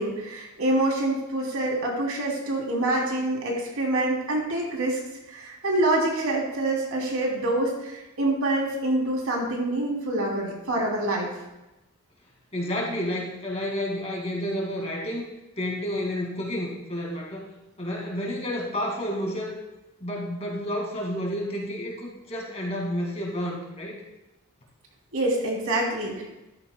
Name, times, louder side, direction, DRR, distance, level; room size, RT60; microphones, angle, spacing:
voice 1, 0.0-5.0 5.3-11.3 25.1-26.2, right 1 dB, 75° right, -1 dB, 3.1 m, -26 dB
voice 2, 12.5-15.2 15.6-17.5 17.8-19.6 20.0-23.9, equal, 30° left, -2 dB, 2.2 m, -30 dB
13.0 x 12.0 x 2.3 m, 0.97 s
head